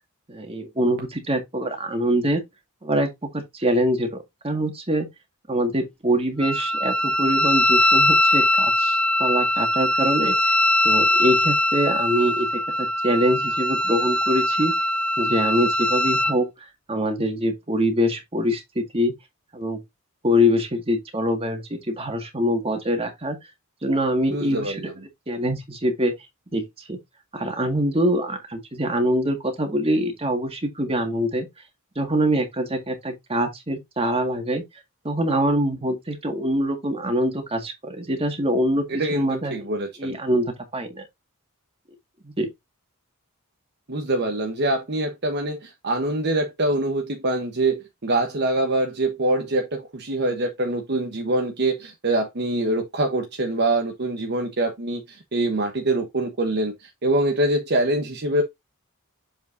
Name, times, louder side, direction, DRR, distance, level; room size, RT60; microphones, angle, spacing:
voice 1, 0.3-2.4 2.8-5.1 5.5-10.5 10.8-14.7 15.2-16.5 16.9-19.1 19.5-19.8 20.2-23.4 23.8-24.9 25.3-26.1 26.5-27.0 27.3-31.5 31.9-34.6 35.0-39.6 40.0-41.1 42.2-42.5, equal, 25° right, 1.8 m, -24 dB
Wind instrument woodwind instrument, 6.4-16.4, left 1 dB, 5° left, 0.4 m, -21 dB
voice 2, 24.2-24.9 38.9-39.3 39.5-40.2 43.9-58.4, right 2 dB, 50° right, 1.1 m, -24 dB
7.3 x 5.4 x 2.6 m
head